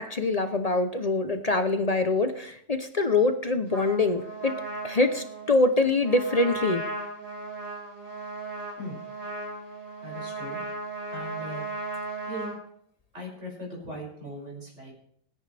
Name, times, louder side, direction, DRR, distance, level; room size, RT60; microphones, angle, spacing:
voice 1, 0.0-4.5 4.8-6.8, left 3 dB, 40° left, 8 dB, 0.5 m, -24 dB
Trumpet, 3.7-12.6, right 2 dB, 75° right, 6.8 m, -36 dB
voice 2, 10.0-10.6 11.1-11.7 12.3-12.5 13.1-14.9, equal, 45° right, -3 dB, 7.0 m, -39 dB
26.5 x 10.0 x 3.5 m, 0.66 s
omnidirectional pair, 1.8 m